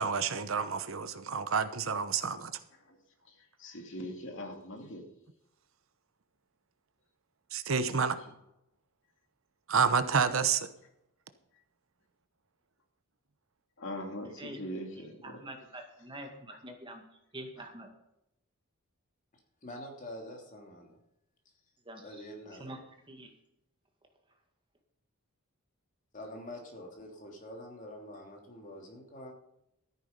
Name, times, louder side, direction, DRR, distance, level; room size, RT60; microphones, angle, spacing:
voice 1, 0.0-2.5 7.5-8.2 9.7-10.7, right 5 dB, 65° right, 11 dB, 0.9 m, -29 dB
voice 2, 3.6-5.0 7.8-8.0 13.8-15.4, equal, 60° left, 3 dB, 2.6 m, -41 dB
voice 3, 15.0-17.0 17.3-17.9 21.9-22.2 22.6-22.8 23.1-23.3, right 1 dB, 25° right, 3 dB, 2.0 m, -45 dB
voice 4, 19.6-21.0 22.0-22.7 26.1-29.3, left 1 dB, 35° left, 0 dB, 3.0 m, -46 dB
13.5 x 9.7 x 5.3 m, 0.85 s
head